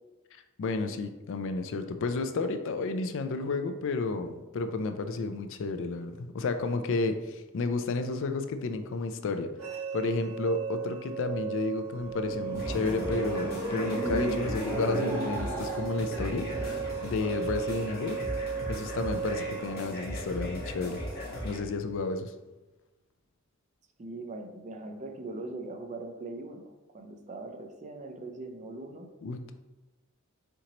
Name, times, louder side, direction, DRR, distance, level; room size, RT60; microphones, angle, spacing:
voice 1, 0.6-9.5 9.9-18.2 18.7-21.0 21.4-22.3 29.2-29.5, left 3 dB, 60° left, 8 dB, 0.4 m, -32 dB
sound 1, 9.6-19.8, right 6 dB, 80° right, 0.8 m, -36 dB
sound 2, 11.8-17.2, right 1 dB, 10° left, 0.9 m, -35 dB
sound 3, 12.5-21.6, equal, 45° left, 1.4 m, -38 dB
voice 2, 24.0-29.1, right 2 dB, 35° right, 4 dB, 0.5 m, -41 dB
4.4 x 3.8 x 2.9 m, 1.1 s
head